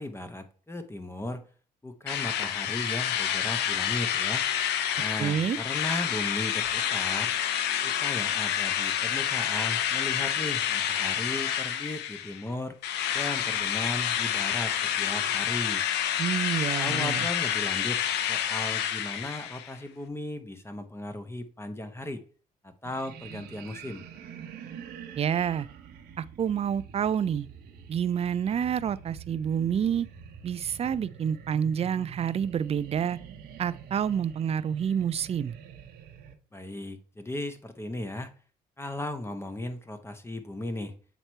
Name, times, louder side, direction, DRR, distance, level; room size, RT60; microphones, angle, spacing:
voice 1, 0.0-1.4 1.8-4.4 5.0-7.3 7.8-12.8 13.1-15.8 16.8-18.0 18.3-22.2 22.6-24.0 36.5-38.3 38.8-41.0, left 1 dB, 15° left, 0.9 m, -36 dB
Drill, 2.1-12.4 12.8-19.7, left 10 dB, 85° left, 0.6 m, -28 dB
voice 2, 5.2-5.6 16.2-17.3 25.2-25.7 26.2-27.5 27.9-30.1 30.4-33.2 33.6-35.5, right 8 dB, 35° right, 0.4 m, -28 dB
sound 1, 22.8-36.3, right 8 dB, 75° right, 1.0 m, -46 dB
7.9 x 3.0 x 4.5 m
supercardioid pair, 75°, 17 cm